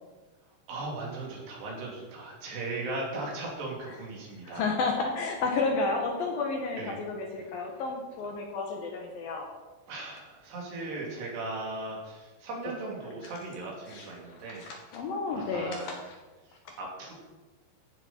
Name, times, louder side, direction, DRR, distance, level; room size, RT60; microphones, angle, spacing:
voice 1, 0.7-4.6 6.8-7.0 7.7-7.8 9.9-14.6 15.3-15.9 16.5-17.2, right 2 dB, 65° right, -2 dB, 5.0 m, -38 dB
voice 2, 4.4-9.5 13.9-14.1 14.6-16.0 16.7-16.8, left 3 dB, 65° left, 2 dB, 2.5 m, -31 dB
15.0 x 10.5 x 4.4 m, 1.3 s
omnidirectional pair, 5.2 m